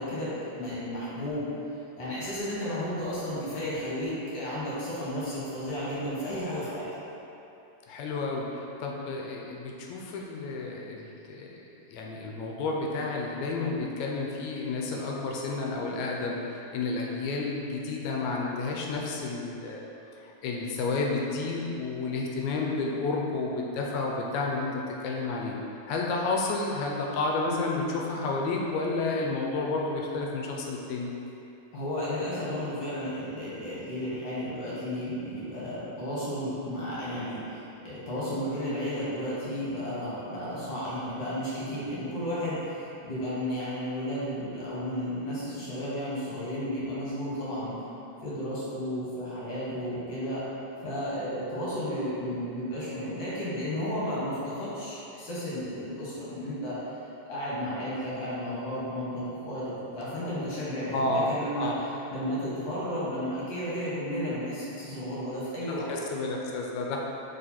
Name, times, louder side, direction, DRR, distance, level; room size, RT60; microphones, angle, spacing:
voice 1, 0.0-1.5 2.0-6.9 31.7-47.8 48.2-50.4 50.8-56.8 57.3-61.7 62.1-65.9, equal, 50° left, -8 dB, 1.7 m, -33 dB
voice 2, 7.9-11.6 11.9-19.9 20.2-25.6 25.9-31.1 60.9-61.3 61.6-61.8 65.9-67.0, left 3 dB, 80° left, -1 dB, 1.9 m, -31 dB
5.3 x 4.4 x 4.2 m, 2.9 s
omnidirectional pair, 3.4 m